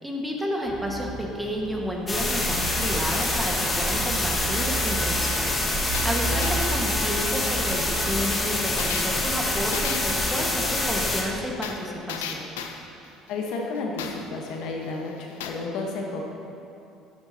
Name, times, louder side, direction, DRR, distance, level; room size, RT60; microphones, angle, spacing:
voice 1, 0.0-12.5, equal, 5° right, -1 dB, 1.5 m, -31 dB
sound 1, 0.6-10.4, right 4 dB, 40° right, 1.0 m, -35 dB
sound 2, 0.9-1.0 1.4-1.5 5.9-14.5 14.8-14.9 15.2-15.5, left 8 dB, 90° left, 0.5 m, -35 dB
sound 3, 2.1-11.2, left 2 dB, 25° left, 1.6 m, -26 dB
voice 2, 6.2-6.5 13.3-16.3, left 3 dB, 70° left, 0 dB, 1.1 m, -32 dB
11.5 x 7.0 x 2.8 m, 2.7 s
supercardioid pair, 75°, 0 cm